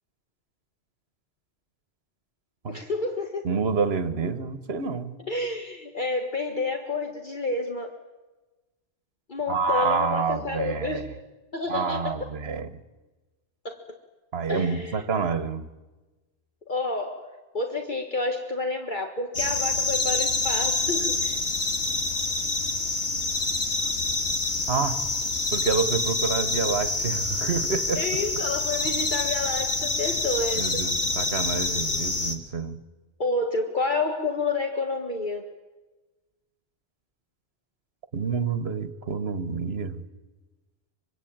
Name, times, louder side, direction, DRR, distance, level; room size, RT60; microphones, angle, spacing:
voice 1, 2.7-3.5 5.3-7.9 9.3-11.1 11.5-12.1 13.7-13.8 14.5-15.0 16.7-17.3 17.5-21.4 28.0-30.8 33.2-35.5, left 3 dB, 45° left, 1.9 m, -29 dB
voice 2, 3.4-5.2 9.5-11.0 11.7-12.7 14.3-15.7 24.7-25.0 25.5-28.1 30.0-30.1 30.5-32.8 38.1-40.0, right 5 dB, 70° right, 1.5 m, -28 dB
sound 1, 19.3-32.4, left 3 dB, 85° left, 2.4 m, -27 dB
24.5 x 24.5 x 8.9 m
omnidirectional pair, 1.1 m